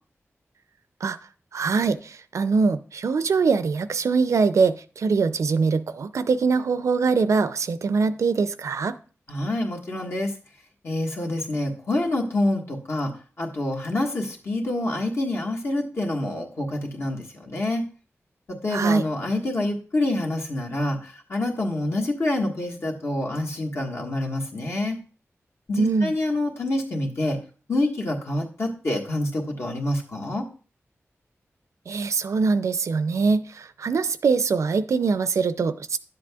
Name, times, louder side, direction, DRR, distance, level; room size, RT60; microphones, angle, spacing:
voice 1, 1.5-9.0 18.7-19.0 25.8-26.1 31.9-36.0, right 4 dB, 85° right, 13 dB, 0.5 m, -23 dB
voice 2, 9.3-10.3 10.8-13.1 13.4-17.8 18.5-25.0 25.7-27.4 27.7-30.5, left 1 dB, 60° left, 0 dB, 1.6 m, -27 dB
11.0 x 7.6 x 2.3 m, 0.38 s
wide cardioid pair, 105°, 5 cm